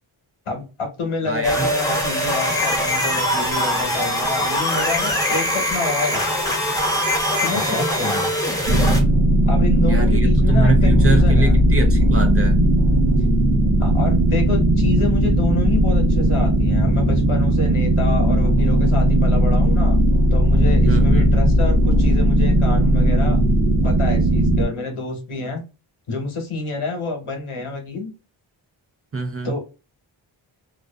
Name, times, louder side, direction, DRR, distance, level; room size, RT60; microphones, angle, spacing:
voice 1, 0.5-6.3 7.4-8.3 9.5-11.6 13.8-20.0 20.3-23.4 23.8-25.6 26.1-28.1 29.4-29.6, left 3 dB, 75° left, 1.0 m, -28 dB
voice 2, 1.3-1.7 7.5-7.9 9.9-12.6 20.9-21.3 29.1-29.5, right 2 dB, 30° right, 0.4 m, -24 dB
sound 1, 1.4-9.0, equal, 5° left, 0.8 m, -22 dB
sound 2, 8.7-24.7, right 1 dB, 50° right, 1.0 m, -17 dB
2.4 x 2.4 x 2.2 m
wide cardioid pair, 85°, 49 cm